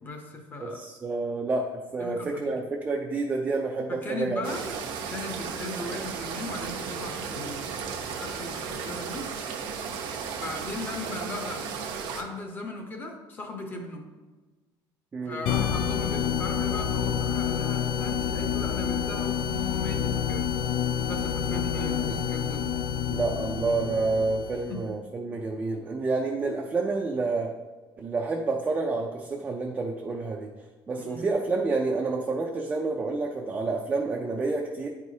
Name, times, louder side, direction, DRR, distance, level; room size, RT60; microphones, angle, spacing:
voice 1, 0.0-0.8 2.0-2.5 3.9-4.6 5.1-7.7 8.0-9.3 10.4-11.7 12.1-14.1 15.3-20.5 21.1-22.7 24.7-24.9 31.0-31.3, left 2 dB, 25° left, 4 dB, 0.8 m, -37 dB
voice 2, 0.6-4.5 15.1-15.4 21.8-22.2 23.1-27.5 28.0-30.5 30.9-34.9, right 3 dB, 15° right, 0 dB, 0.4 m, -29 dB
sound 1, 4.4-12.2, right 6 dB, 80° right, 0.8 m, -35 dB
sound 2, 15.5-24.8, left 8 dB, 80° left, 0.4 m, -28 dB
9.5 x 4.7 x 2.7 m, 1.3 s
cardioid pair, 180°, 9 cm